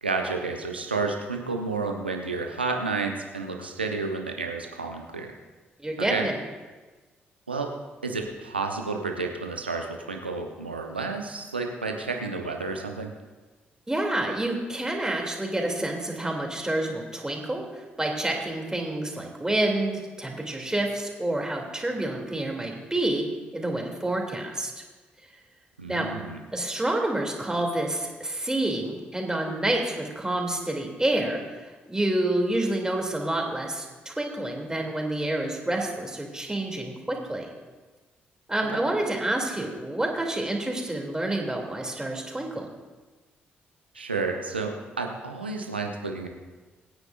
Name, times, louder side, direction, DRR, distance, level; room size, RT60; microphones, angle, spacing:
voice 1, 0.0-5.3 6.0-6.3 7.5-7.7 8.0-13.1 25.8-26.4 43.9-46.3, right 3 dB, 90° right, 3 dB, 0.9 m, -31 dB
voice 2, 5.8-6.3 13.9-23.2 23.5-24.7 25.9-26.1 26.5-37.5 38.5-42.7, right 1 dB, 10° right, 1 dB, 2.9 m, -28 dB
24.0 x 9.7 x 2.6 m, 1.3 s
figure-of-eight pair, 40°, 5 cm